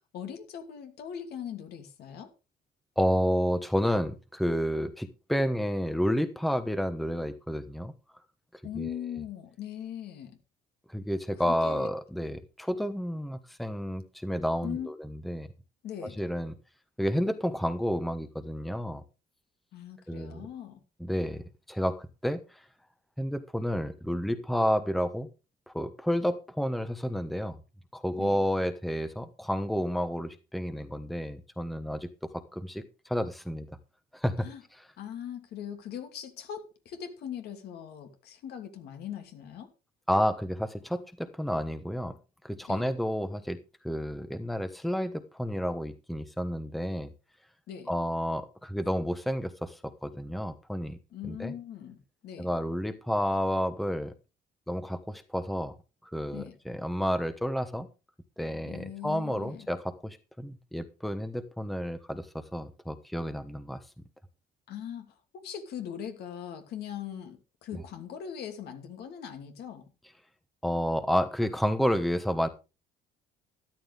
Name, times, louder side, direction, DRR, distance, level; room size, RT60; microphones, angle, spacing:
voice 1, 0.1-2.3 8.6-10.4 11.5-11.9 14.6-14.9 15.8-16.2 19.7-20.8 28.2-28.4 34.4-34.6 35.0-39.7 42.7-42.9 47.7-47.9 51.1-52.5 56.3-56.6 58.7-59.7 64.7-69.8, left 9 dB, 70° left, 2.8 m, -40 dB
voice 2, 3.0-7.9 8.8-9.0 10.9-15.5 16.2-16.5 17.0-19.0 20.1-20.5 21.0-22.4 23.2-25.3 25.7-27.6 27.9-32.1 32.3-33.7 34.1-34.5 40.1-42.1 42.4-43.6 43.8-47.1 47.9-51.0 51.2-51.5 52.4-54.1 54.7-55.7 56.1-57.9 58.4-62.3 62.5-63.8 67.7-67.8 70.6-72.5, equal, ahead, 1.1 m, -30 dB
13.5 x 11.5 x 3.6 m
cardioid pair, 110°, 17 cm